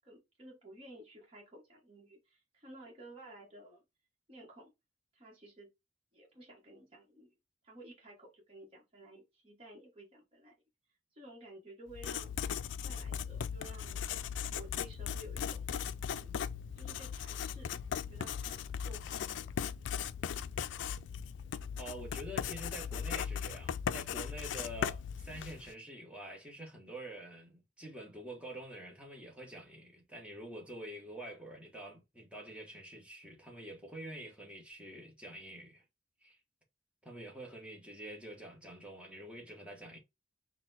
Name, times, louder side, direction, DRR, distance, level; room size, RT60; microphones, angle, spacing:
voice 1, 0.0-3.8 4.3-4.7 5.1-5.7 6.1-7.3 7.6-10.5 11.1-12.3 12.8-14.0 14.3-15.6 16.1-16.3 16.7-17.8 18.1-19.5, right 1 dB, 35° right, 1.1 m, -54 dB
Writing, 11.9-25.7, left 8 dB, 85° left, 0.3 m, -38 dB
voice 2, 21.8-35.8 36.2-36.4 37.0-40.0, right 1 dB, 5° right, 1.1 m, -47 dB
4.1 x 2.2 x 3.8 m
head